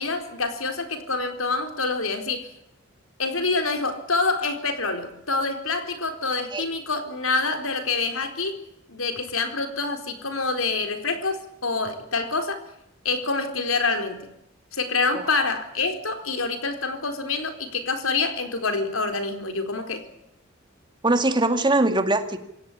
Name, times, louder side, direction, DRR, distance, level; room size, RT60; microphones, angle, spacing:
voice 1, 0.0-2.5 3.2-8.6 8.9-12.6 13.0-14.3 14.7-20.0, left 3 dB, 80° left, 7 dB, 4.2 m, -26 dB
voice 2, 21.0-22.4, right 2 dB, 20° right, 8 dB, 2.2 m, -21 dB
27.5 x 16.5 x 10.0 m, 0.82 s
head